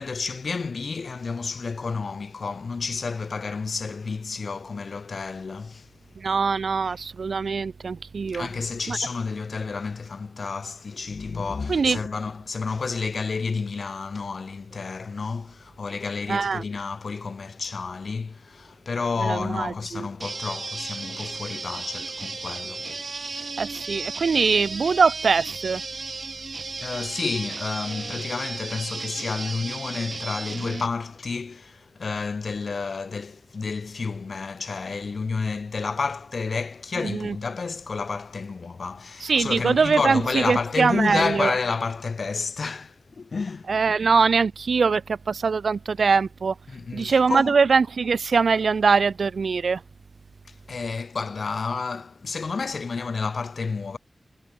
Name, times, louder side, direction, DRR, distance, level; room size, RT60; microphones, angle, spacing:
voice 1, 0.0-5.9 6.9-7.0 8.3-23.6 26.8-43.7 46.7-47.6 50.5-54.0, left 4 dB, 75° left, 3.2 m, -30 dB
voice 2, 6.2-8.5 8.9-9.0 11.7-12.0 16.3-16.6 19.2-20.1 23.6-25.8 37.0-37.4 39.2-41.5 43.7-46.5 46.9-49.8, right 5 dB, 90° right, 0.4 m, -22 dB
sound 1, 20.2-30.9, right 3 dB, 60° right, 4.9 m, -34 dB
wide cardioid pair, 70°, 0 cm